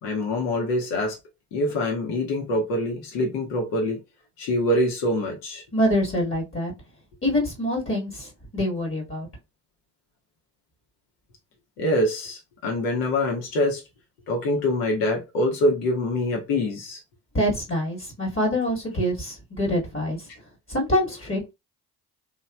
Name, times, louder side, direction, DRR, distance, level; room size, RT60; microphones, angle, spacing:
voice 1, 0.0-1.2 1.5-4.0 4.4-5.6 11.8-13.8 14.3-17.0, left 1 dB, 60° left, 1.0 m, -25 dB
voice 2, 5.7-6.7 7.2-9.3 17.3-20.2 20.7-21.5, equal, 25° left, 1.4 m, -25 dB
3.1 x 2.4 x 2.2 m
figure-of-eight pair, 45°, 48 cm